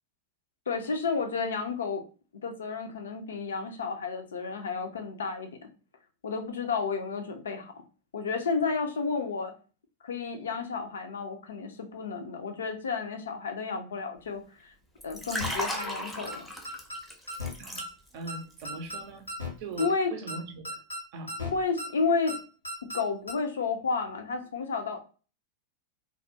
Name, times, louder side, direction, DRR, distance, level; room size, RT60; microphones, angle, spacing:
voice 1, 0.7-2.0 2.4-5.7 6.2-7.8 8.1-9.5 10.0-14.7 15.0-16.5 19.8-20.1 21.4-22.4 22.8-25.0, left 4 dB, 65° left, 0.4 m, -31 dB
Liquid, 15.0-18.3 18.6-18.9, equal, 5° left, 0.6 m, -36 dB
sound 1, 15.3-15.5 15.8-15.9 16.3-16.4 16.6-17.0 17.3-17.5 17.8-17.9 18.3-18.4 18.6-19.0 19.3-19.5 19.8-19.9 20.3-20.4 20.6-21.0 21.3-21.5 21.8-21.9 22.3-22.4 22.6-23.0 23.3-23.4, left 1 dB, 85° left, 0.8 m, -36 dB
voice 2, 18.1-20.8 21.1-21.4, right 3 dB, 50° right, 0.5 m, -41 dB
2.2 x 2.0 x 2.7 m
figure-of-eight pair, 90°, 0 cm